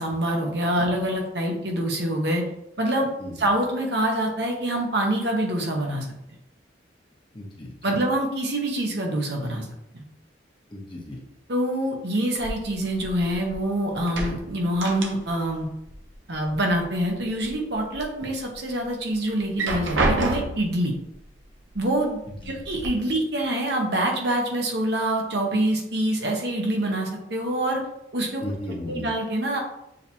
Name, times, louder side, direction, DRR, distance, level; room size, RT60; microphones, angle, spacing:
voice 1, 0.0-2.4 2.8-3.1 3.4-6.1 7.8-9.7 11.5-15.7 16.3-20.9 21.7-22.2 22.4-27.8 28.1-28.4 28.9-29.6, right 1 dB, 65° right, 1 dB, 0.9 m, -25 dB
voice 2, 7.3-8.0 10.7-11.2 22.3-22.6 28.4-29.0, left 1 dB, 25° left, -3 dB, 1.0 m, -35 dB
sound 1, 12.4-13.7 14.0-15.6 15.8-16.8 17.2-18.0 18.5-18.6 19.4-20.8 21.7-21.8 22.2-22.9, right 2 dB, 90° right, 0.8 m, -28 dB
6.4 x 2.9 x 2.8 m, 0.80 s
head